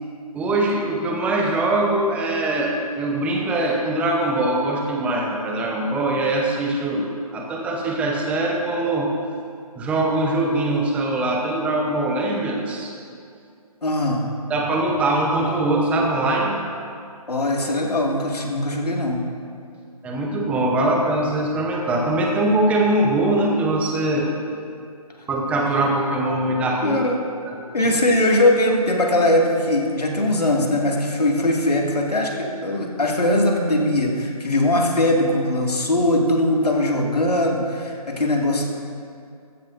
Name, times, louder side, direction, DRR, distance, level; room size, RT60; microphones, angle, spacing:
voice 1, 0.3-9.1 9.8-12.9 14.5-16.6 20.0-24.3 25.3-27.0 27.4-27.5 27.8-27.9, right 2 dB, 5° right, -1 dB, 0.8 m, -22 dB
voice 2, 13.8-14.3 17.3-19.2 26.8-27.2 27.6-38.7, left 1 dB, 80° left, 0 dB, 2.1 m, -20 dB
15.0 x 13.0 x 2.6 m, 2.4 s
figure-of-eight pair, 150°, 20 cm